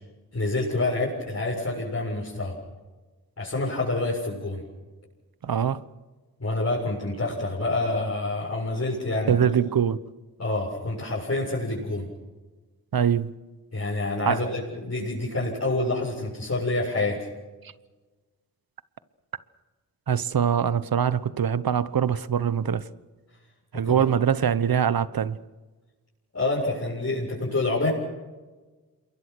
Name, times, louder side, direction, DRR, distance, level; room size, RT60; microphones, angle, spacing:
voice 1, 0.3-2.5 3.4-4.6 6.4-9.4 10.4-12.1 13.7-17.3 23.8-24.0 26.3-27.9, left 2 dB, 40° left, 7.4 m, -27 dB
voice 2, 5.4-5.8 9.3-10.0 12.9-13.3 14.2-14.5 17.6-17.7 20.1-22.9 23.7-25.4, right 8 dB, 60° right, 1.1 m, -23 dB
27.5 x 22.5 x 6.3 m
cardioid pair, 45°, 40 cm